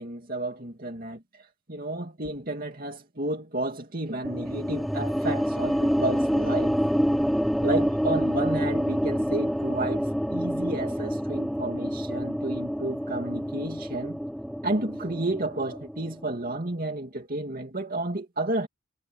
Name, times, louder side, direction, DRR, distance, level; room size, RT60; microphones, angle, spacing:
voice 1, 0.0-6.8 7.6-14.2 14.6-18.7, right 2 dB, 45° right, 2.6 m, -32 dB
sound 1, 4.2-16.5, equal, ahead, 2.6 m, -27 dB
head